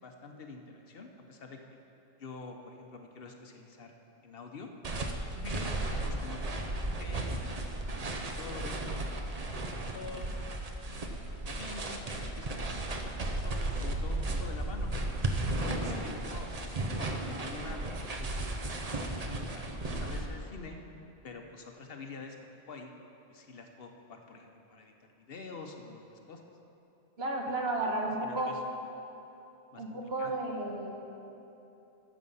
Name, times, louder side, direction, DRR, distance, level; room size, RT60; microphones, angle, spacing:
voice 1, 0.0-1.6 2.2-4.0 4.2-4.7 5.4-7.6 8.4-9.0 9.2-10.4 11.0-12.0 12.4-14.9 15.6-19.0 19.5-20.8 21.2-22.4 22.7-22.9 23.3-26.4 28.2-28.6 29.7-30.4, left 3 dB, 60° left, 4 dB, 1.1 m, -47 dB
sound 1, 4.8-20.3, right 2 dB, 40° right, 0.8 m, -35 dB
voice 2, 5.3-5.7 15.9-16.0 27.2-28.5 29.8-30.9, right 2 dB, 65° right, 0 dB, 1.6 m, -33 dB
13.0 x 7.3 x 5.5 m, 2.9 s
omnidirectional pair, 1.1 m